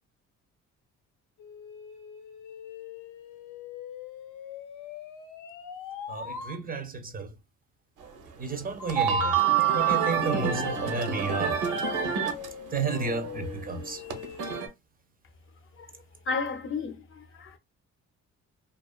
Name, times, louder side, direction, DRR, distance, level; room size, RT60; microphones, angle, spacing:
sound 1, 1.4-6.6 8.8-14.6, left 8 dB, 85° left, 0.6 m, -42 dB
voice 1, 6.1-7.3 8.4-9.3 9.7-11.6 12.7-14.0, right 4 dB, 30° right, 0.4 m, -32 dB
sound 2, 8.0-8.1 8.6-12.5 12.7-14.7, right 7 dB, 90° right, 0.6 m, -27 dB
voice 2, 16.3-17.6, left 4 dB, 45° left, 0.5 m, -33 dB
2.4 x 2.3 x 2.3 m
cardioid pair, 90°, 30 cm